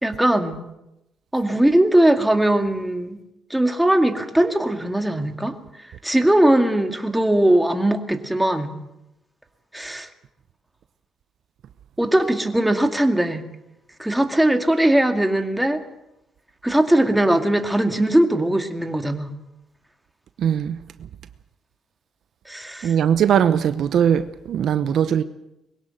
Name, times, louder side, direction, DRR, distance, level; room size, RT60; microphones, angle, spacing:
voice 1, 0.0-0.6 1.3-3.2 3.5-5.5 6.0-8.8 9.7-10.1 12.0-13.4 14.0-15.8 16.6-19.3 22.5-22.9, right 1 dB, 5° right, 2.2 m, -19 dB
voice 2, 20.4-20.8 22.8-25.2, right 8 dB, 70° right, 0.8 m, -20 dB
21.5 x 17.0 x 7.8 m
cardioid pair, 90°, 0 cm